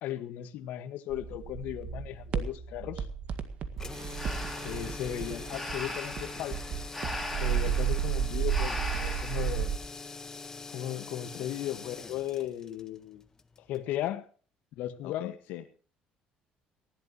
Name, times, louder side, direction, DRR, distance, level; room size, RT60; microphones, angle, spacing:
voice 1, 0.0-3.1 4.6-6.6 7.4-9.7 10.7-13.2 13.7-14.3 14.8-15.3, left 12 dB, 70° left, 1.7 m, -36 dB
sound 1, 1.1-9.8, right 8 dB, 50° right, 1.9 m, -33 dB
sound 2, 3.7-13.9, left 4 dB, 20° left, 1.4 m, -44 dB
Breathing, 4.1-9.7, left 1 dB, ahead, 3.5 m, -39 dB
voice 2, 15.0-15.8, left 13 dB, 90° left, 1.3 m, -42 dB
19.5 x 15.5 x 3.1 m
cardioid pair, 140°, 3 cm